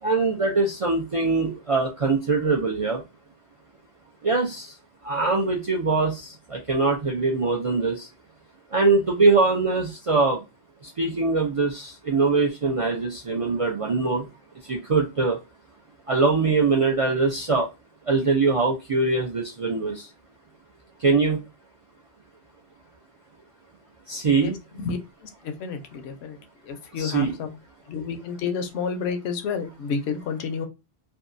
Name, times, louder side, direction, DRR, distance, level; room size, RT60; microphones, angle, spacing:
voice 1, 0.0-3.0 4.2-4.8 5.0-8.1 8.7-10.4 10.8-14.3 14.6-15.4 16.1-17.7 18.0-20.1 21.0-21.4 24.1-24.6 26.9-27.4, right 3 dB, 60° right, 0 dB, 0.3 m, -23 dB
voice 2, 25.4-26.4 26.7-27.5 27.9-30.7, left 5 dB, 75° left, 7 dB, 0.8 m, -30 dB
2.7 x 2.3 x 2.4 m, 0.25 s
omnidirectional pair, 1.1 m